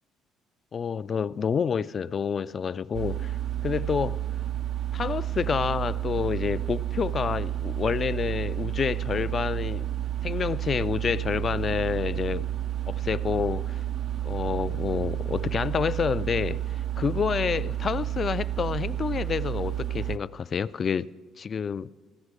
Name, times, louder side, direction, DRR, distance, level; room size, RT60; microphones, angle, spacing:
voice 1, 0.7-3.4 3.6-4.2 4.9-9.9 10.2-12.5 12.9-13.8 14.2-16.6 17.0-21.1 21.4-21.9, left 6 dB, 40° left, 0.3 m, -28 dB
sound 1, 2.9-20.2, right 12 dB, 55° right, 0.4 m, -31 dB
16.0 x 14.0 x 4.9 m
cardioid pair, 90°, 0 cm